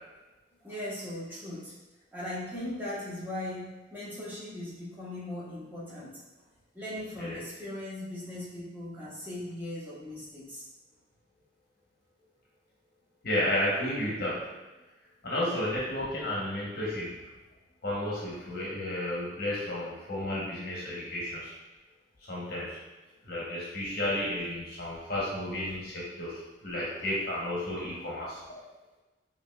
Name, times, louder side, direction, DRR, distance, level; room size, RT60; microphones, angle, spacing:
voice 1, 0.6-1.7 2.1-6.2 6.7-10.6, left 1 dB, 10° right, -9 dB, 1.0 m, -39 dB
voice 2, 13.2-14.4 15.2-17.2 17.8-21.5 22.3-22.8 23.2-28.4, left 1 dB, 55° left, -6 dB, 0.9 m, -32 dB
5.1 x 2.8 x 2.2 m, 1.1 s
head